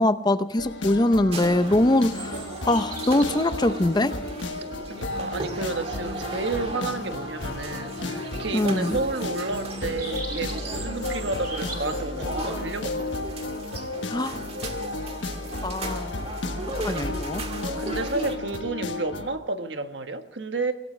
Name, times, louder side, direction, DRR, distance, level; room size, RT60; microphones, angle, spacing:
voice 1, 0.0-4.1 8.5-9.0 14.1-14.4 15.6-16.2 16.8-17.4, left 1 dB, 20° left, 0.6 m, -23 dB
sound 1, 0.6-19.4, left 2 dB, 75° left, 1.4 m, -33 dB
sound 2, 1.3-18.4, right 2 dB, 30° right, 1.8 m, -37 dB
sound 3, 2.0-3.6 4.6-4.7 9.3-12.0, right 3 dB, 50° right, 5.4 m, -40 dB
voice 2, 4.9-13.2 16.9-17.3 17.8-20.7, right 3 dB, 65° right, 1.3 m, -31 dB
25.0 x 17.5 x 3.3 m
head